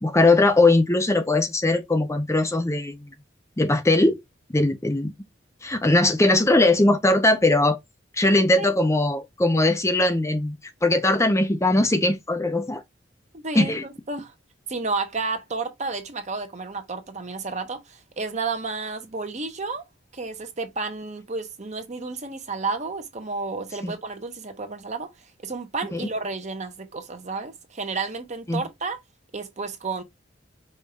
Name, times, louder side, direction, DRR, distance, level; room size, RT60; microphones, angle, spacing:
voice 1, 0.0-3.1 3.6-4.2 4.5-5.1 5.6-7.8 8.1-12.8 13.5-13.8 23.8-23.9 25.9-26.0 28.5-28.6, left 2 dB, 15° left, 0.6 m, -20 dB
voice 2, 13.3-14.3 14.7-19.8 20.1-29.0 29.3-30.0, right 4 dB, 40° right, 1.0 m, -31 dB
5.3 x 2.6 x 3.3 m
head